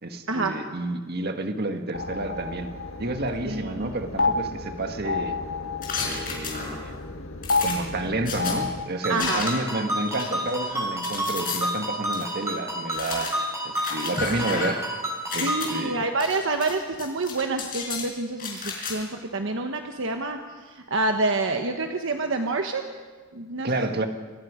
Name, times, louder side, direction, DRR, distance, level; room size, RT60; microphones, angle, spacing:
voice 1, 0.0-2.7 3.0-5.4 6.0-7.0 7.6-13.3 13.6-14.8 15.3-16.0 23.6-24.1, right 2 dB, 50° right, 5 dB, 1.8 m, -30 dB
sound 1, 1.9-8.8, left 3 dB, 80° left, 1.4 m, -30 dB
voice 2, 3.5-3.9 9.1-9.4 15.3-22.9 23.3-23.7, right 3 dB, 70° right, 4 dB, 1.2 m, -27 dB
sound 2, 5.8-6.9 7.4-8.5 9.2-9.7 10.1-11.6 12.1-12.2 12.9-14.9 15.2-15.7 16.2-16.7 17.0-18.0 18.4-18.9, left 5 dB, 45° left, 5.7 m, -33 dB
Ringtone, 9.0-15.9, equal, 15° right, 6.2 m, -30 dB
28.0 x 20.0 x 5.1 m, 1.4 s
head